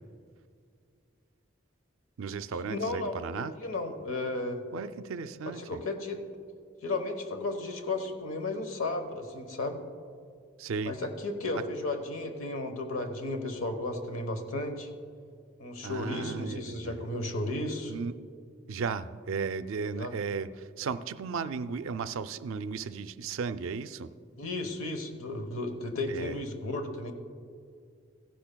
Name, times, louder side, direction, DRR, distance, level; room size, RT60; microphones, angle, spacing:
voice 1, 2.2-3.5 4.7-5.8 10.6-10.9 15.8-17.0 17.9-18.1 18.7-24.1 26.1-26.4, right 5 dB, 75° right, 12 dB, 0.4 m, -35 dB
voice 2, 2.7-4.6 5.6-6.2 6.8-9.8 10.8-14.9 15.6-17.9 19.9-20.1 24.4-27.1, left 2 dB, 85° left, 7 dB, 1.0 m, -34 dB
15.5 x 10.5 x 2.2 m, 2.2 s
head